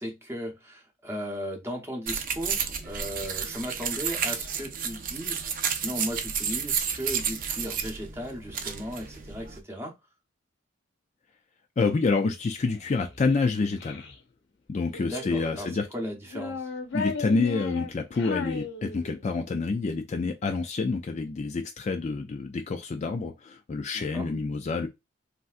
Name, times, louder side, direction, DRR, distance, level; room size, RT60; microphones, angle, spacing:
voice 1, 0.0-9.9 15.0-16.7 23.9-24.3, equal, 10° right, 0.7 m, -36 dB
sound 1, 2.1-9.6, right 7 dB, 45° right, 0.4 m, -31 dB
voice 2, 11.8-14.0 14.7-15.9 16.9-24.9, left 4 dB, 35° left, 0.3 m, -28 dB
Child speech kid speaking, 12.5-14.2 14.9-15.8 16.2-19.4, left 4 dB, 65° left, 0.7 m, -36 dB
3.3 x 2.6 x 2.4 m
head